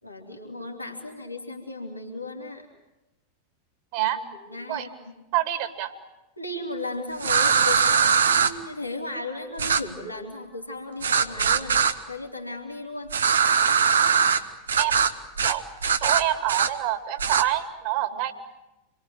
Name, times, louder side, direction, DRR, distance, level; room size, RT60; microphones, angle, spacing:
voice 1, 0.0-2.7 4.0-4.1 4.4-5.1 6.4-11.8 12.1-13.1 18.1-18.2, left 2 dB, 85° left, 0 dB, 3.4 m, -35 dB
voice 2, 5.3-5.9 14.8-15.1 15.4-15.7 16.0-18.3, right 14 dB, 45° right, 9 dB, 2.6 m, -27 dB
sound 1, 7.2-8.5 9.6-9.8 11.0-11.9 13.1-14.4 14.7-15.1 15.4-15.6 15.8-16.7 17.2-17.4, right 6 dB, 70° right, 1.4 m, -21 dB
28.0 x 22.0 x 9.3 m, 1.0 s
figure-of-eight pair, 90°, 0 cm